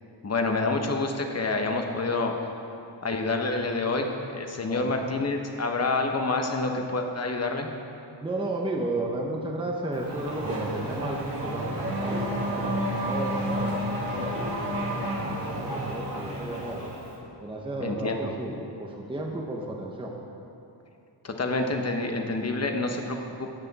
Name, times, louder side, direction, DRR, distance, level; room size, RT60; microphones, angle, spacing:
voice 1, 0.2-2.5 3.0-7.7 17.8-18.6 21.2-23.5, left 3 dB, 35° left, 3 dB, 1.0 m, -28 dB
voice 2, 8.2-14.4 14.8-16.9 17.4-20.1, right 2 dB, 10° right, -1 dB, 0.8 m, -34 dB
Race car auto racing / Accelerating revving vroom, 9.9-17.2, right 1 dB, 45° right, 2.2 m, -30 dB
17.5 x 8.3 x 4.1 m, 2.8 s
wide cardioid pair, 180°, 47 cm